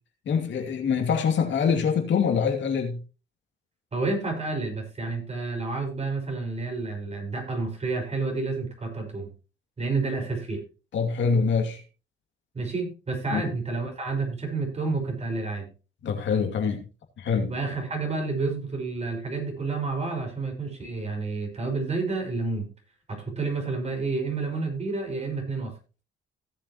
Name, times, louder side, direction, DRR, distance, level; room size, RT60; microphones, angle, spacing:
voice 1, 0.3-3.0 10.9-11.8 13.3-13.4 16.0-16.8 17.2-17.5, left 6 dB, 65° left, 2.7 m, -24 dB
voice 2, 3.9-9.3 9.8-10.6 12.5-15.7 17.5-22.7 23.1-25.7, right 3 dB, 35° right, 5.4 m, -30 dB
17.0 x 7.4 x 3.0 m
cardioid pair, 90°, 20 cm